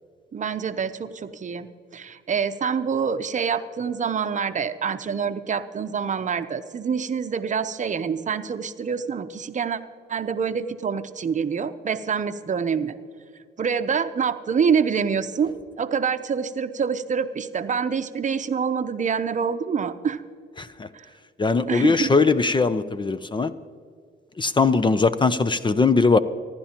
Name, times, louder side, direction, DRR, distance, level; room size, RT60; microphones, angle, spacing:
voice 1, 0.3-9.8 10.1-12.9 13.6-20.2 21.7-22.1, right 6 dB, 40° right, 10 dB, 0.7 m, -26 dB
voice 2, 20.6-20.9 21.4-23.5 24.4-26.2, left 4 dB, 25° left, 13 dB, 0.5 m, -20 dB
25.0 x 11.5 x 2.9 m, 2.2 s
cardioid pair, 90°, 20 cm